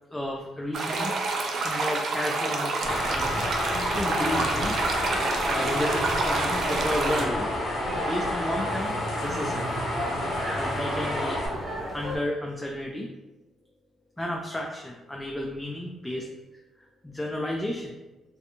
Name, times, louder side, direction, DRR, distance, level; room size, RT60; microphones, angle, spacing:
voice 1, 0.1-1.1 1.6-3.4 3.9-4.8 5.5-7.5 8.0-9.7 10.5-11.4 11.9-13.1 14.2-16.3 17.0-18.0, left 1 dB, 10° left, -1 dB, 0.3 m, -32 dB
sound 1, 0.7-7.3, right 3 dB, 60° right, 0.4 m, -28 dB
sound 2, 2.8-12.2, equal, 35° right, 0.9 m, -33 dB
sound 3, 2.9-11.5, left 2 dB, 65° left, 0.7 m, -31 dB
2.5 x 2.1 x 2.8 m, 1.0 s
cardioid pair, 90°, 0 cm